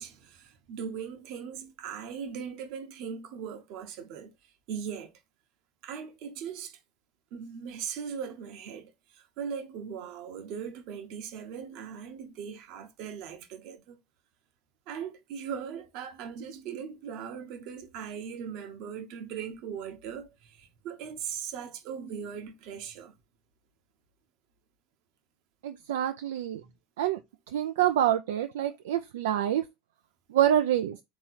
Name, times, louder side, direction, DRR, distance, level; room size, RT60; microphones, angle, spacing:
voice 1, 0.0-5.2 5.8-6.8 7.3-14.0 14.9-23.1 26.6-26.7, right 7 dB, 60° right, 0.9 m, -39 dB
voice 2, 25.6-26.6 27.0-27.2 27.5-29.6 30.3-31.0, right 11 dB, 75° right, 0.3 m, -26 dB
3.7 x 2.9 x 4.1 m
hypercardioid pair, 80°, 0 cm